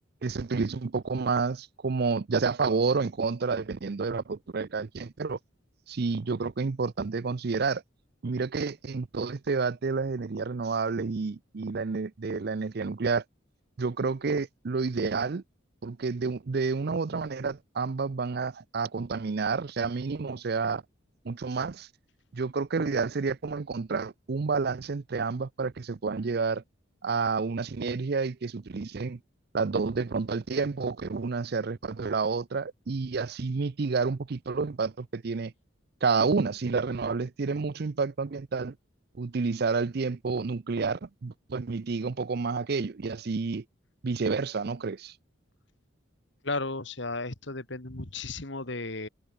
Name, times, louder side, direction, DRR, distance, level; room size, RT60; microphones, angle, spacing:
voice 1, 0.2-5.4 5.9-7.8 8.2-13.2 13.8-15.4 15.8-20.8 21.2-21.9 22.3-26.6 27.0-29.2 29.5-35.5 36.0-38.7 39.2-43.6 44.0-45.1, right 4 dB, 50° right, 0.5 m, -29 dB
voice 2, 46.4-49.1, left 3 dB, 60° left, 2.2 m, -34 dB
head